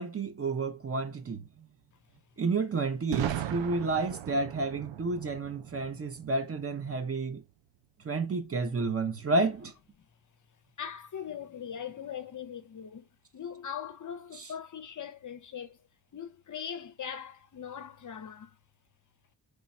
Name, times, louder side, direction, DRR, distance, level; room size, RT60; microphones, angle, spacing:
voice 1, 0.0-1.4 2.4-7.4 8.0-9.7, right 3 dB, 30° right, 0.6 m, -30 dB
Boom, 3.1-6.9, right 11 dB, 75° right, 0.5 m, -37 dB
voice 2, 10.8-15.8 16.1-18.6, left 8 dB, 45° left, 0.5 m, -41 dB
3.3 x 2.2 x 4.1 m
cardioid pair, 70°, 45 cm